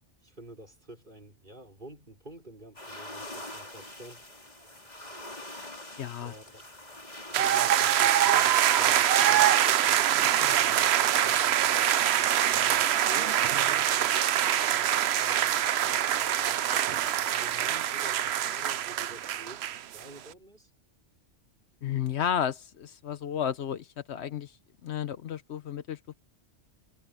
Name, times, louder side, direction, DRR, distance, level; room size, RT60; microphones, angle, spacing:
voice 1, 0.2-4.2 6.2-6.7 7.4-11.9 12.5-14.2 14.7-17.1 17.3-20.7, right 1 dB, 45° right, 5.5 m, -49 dB
sound 1, 2.7-10.3, left 1 dB, 35° left, 4.3 m, -44 dB
voice 2, 6.0-6.3 21.8-24.5 24.8-26.1, left 9 dB, 70° left, 1.0 m, -32 dB
sound 2, 7.3-20.0, right 11 dB, 65° right, 0.9 m, -24 dB
omnidirectional pair, 1.2 m